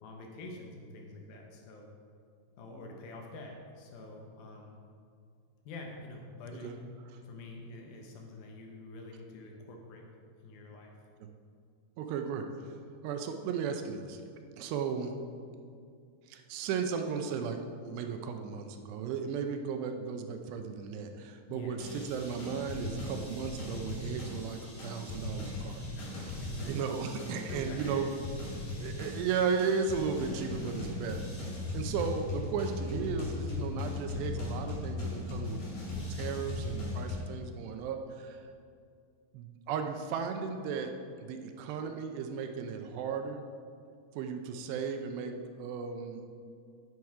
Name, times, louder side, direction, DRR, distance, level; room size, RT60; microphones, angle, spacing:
voice 1, 0.0-1.9 2.6-4.8 5.7-6.8 7.2-10.0 10.4-10.9 21.5-21.8 26.0-26.8 27.5-28.1, left 2 dB, 70° left, 1 dB, 2.4 m, -46 dB
voice 2, 12.0-12.8 13.0-14.2 14.6-15.1 16.3-17.6 17.8-25.8 26.7-28.1 28.7-35.8 36.1-38.5 39.3-40.9 41.2-43.4 44.2-46.3, right 6 dB, 80° right, 5 dB, 2.7 m, -35 dB
sound 1, 21.8-37.2, left 2 dB, 40° left, 3.7 m, -38 dB
9.5 x 8.7 x 4.8 m, 2.3 s
omnidirectional pair, 5.2 m